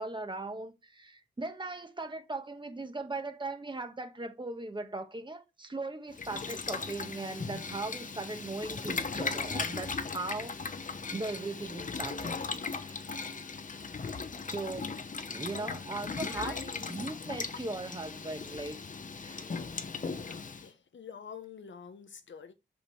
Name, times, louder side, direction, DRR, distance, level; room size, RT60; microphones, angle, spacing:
voice 1, 0.0-12.4 12.7-13.2 14.5-15.0 15.3-18.8 19.2-19.4, right 2 dB, 25° right, 1.3 m, -39 dB
Boiling, 6.1-20.7, left 4 dB, 45° left, 0.8 m, -38 dB
voice 2, 15.5-16.9 19.9-22.5, left 6 dB, 85° left, 1.1 m, -47 dB
6.1 x 5.9 x 4.5 m
wide cardioid pair, 135°, 19 cm